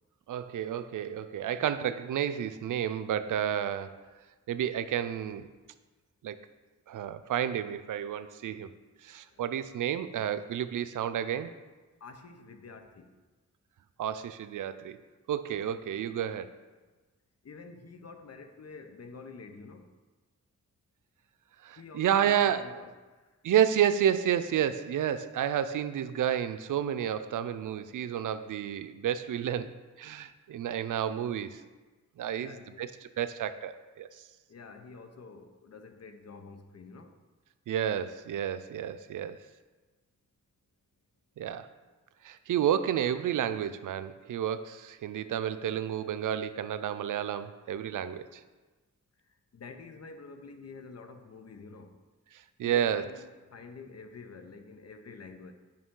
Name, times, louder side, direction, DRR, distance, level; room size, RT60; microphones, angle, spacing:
voice 1, 0.3-4.0 4.5-5.5 6.2-6.4 6.9-8.7 9.0-11.5 14.0-15.0 15.3-16.5 21.6-22.7 23.4-29.7 30.0-31.6 32.2-32.5 32.8-32.9 33.2-34.1 37.7-39.4 41.4-41.7 42.2-48.2 52.6-53.0, right 9 dB, 85° right, 12 dB, 0.5 m, -30 dB
voice 2, 9.3-9.6 12.0-13.1 17.4-19.9 21.8-23.4 32.4-32.9 34.5-37.2 49.2-52.0 52.6-55.5, left 4 dB, 55° left, 7 dB, 0.8 m, -48 dB
8.7 x 5.9 x 3.8 m, 1.3 s
wide cardioid pair, 95°, 31 cm